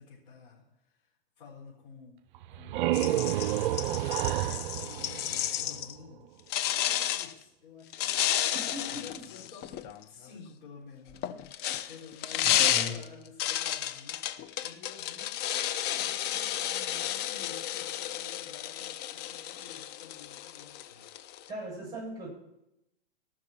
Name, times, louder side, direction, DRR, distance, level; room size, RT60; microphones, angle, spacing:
voice 1, 0.0-2.2 2.5-6.3 7.1-8.1 8.4-15.3 15.6-21.1, left 5 dB, 55° left, -6 dB, 4.5 m, -51 dB
sound 1, 2.3-6.0, right 14 dB, 55° right, 0.5 m, -30 dB
sound 2, 2.9-5.9 6.5-7.3 7.9-10.0 11.1-21.5, left 11 dB, 30° left, 0.8 m, -32 dB
voice 2, 8.5-9.0 12.4-13.0 21.5-22.4, equal, 10° right, -3 dB, 7.0 m, -38 dB
18.0 x 6.3 x 7.3 m, 0.84 s
hypercardioid pair, 110°, 31 cm